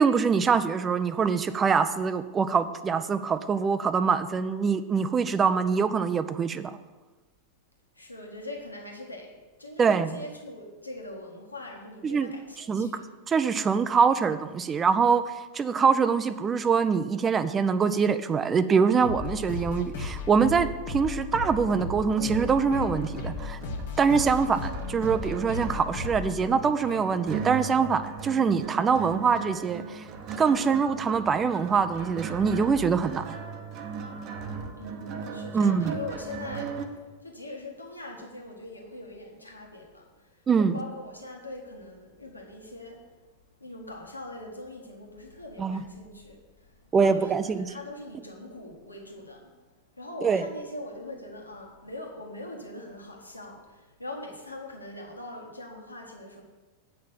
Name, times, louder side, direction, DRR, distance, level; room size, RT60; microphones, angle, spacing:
voice 1, 0.0-6.8 9.8-10.2 12.0-12.3 12.7-12.9 13.3-23.6 24.0-30.0 30.4-33.4 35.5-36.0 40.5-40.8 45.6-45.8 46.9-47.7 50.2-50.4, right 5 dB, 20° right, 12 dB, 0.5 m, -24 dB
voice 2, 7.9-13.0 34.7-36.8 37.2-43.1 43.6-49.5 49.9-56.4, left 2 dB, 85° left, 0 dB, 1.5 m, -42 dB
sound 1, 19.0-27.4, left 4 dB, 60° left, 1.7 m, -36 dB
sound 2, 21.4-36.9, right 6 dB, 40° right, 0.9 m, -38 dB
8.7 x 5.6 x 7.1 m, 1.3 s
figure-of-eight pair, 90°, 0 cm